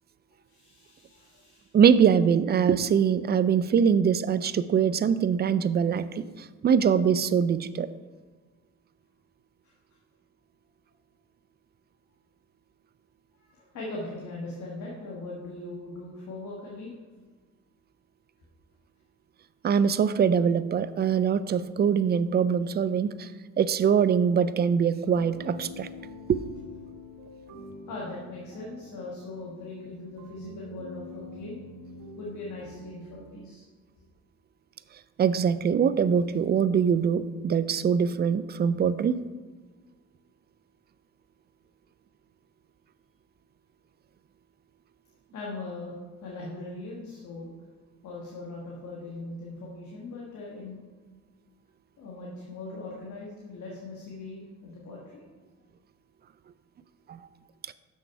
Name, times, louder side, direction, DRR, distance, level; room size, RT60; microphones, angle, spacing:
voice 1, 0.5-1.8 9.6-9.7 13.5-16.9 27.9-31.6 32.2-33.6 45.3-46.0 46.2-47.5 48.0-50.8 52.0-55.2, left 2 dB, 75° left, -4 dB, 1.6 m, -40 dB
voice 2, 1.7-6.2 6.6-7.9 19.6-23.3 23.6-25.9 26.3-26.4 35.2-39.2 57.1-57.2, right 7 dB, 35° right, 14 dB, 0.4 m, -23 dB
sound 1, 24.1-33.5, left 2 dB, 90° right, 1.3 m, -46 dB
6.6 x 6.3 x 4.6 m, 1.3 s
cardioid pair, 90°, 30 cm